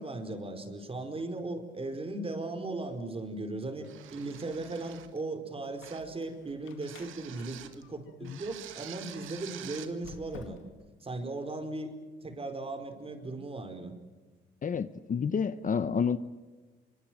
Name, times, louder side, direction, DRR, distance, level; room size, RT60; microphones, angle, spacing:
voice 1, 0.0-10.6 11.0-13.9, right 2 dB, 30° right, 4.7 m, -37 dB
sound 1, 3.8-5.2 5.8-6.2 6.8-7.8 8.2-9.9, right 11 dB, 85° right, 2.1 m, -47 dB
Squeak, 5.7-8.8 9.6-10.9, left 6 dB, 85° left, 2.4 m, -53 dB
voice 2, 14.6-16.2, left 6 dB, 40° left, 1.0 m, -29 dB
25.5 x 24.0 x 7.8 m
cardioid pair, 90°, 20 cm